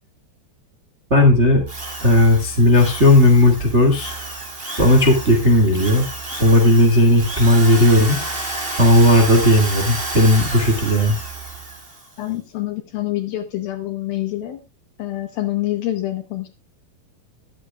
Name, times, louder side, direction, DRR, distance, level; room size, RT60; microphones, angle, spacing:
voice 1, 1.1-1.6 2.0-4.1 4.8-6.1 6.4-8.2 8.8-11.2, left 1 dB, 80° right, 2 dB, 0.6 m, -14 dB
Drill, 1.7-12.1, right 2 dB, 35° right, 0.9 m, -31 dB
voice 2, 12.2-14.6 15.0-16.5, left 15 dB, 75° left, 7 dB, 2.2 m, -26 dB
21.0 x 8.3 x 2.4 m, 0.25 s
omnidirectional pair, 5.2 m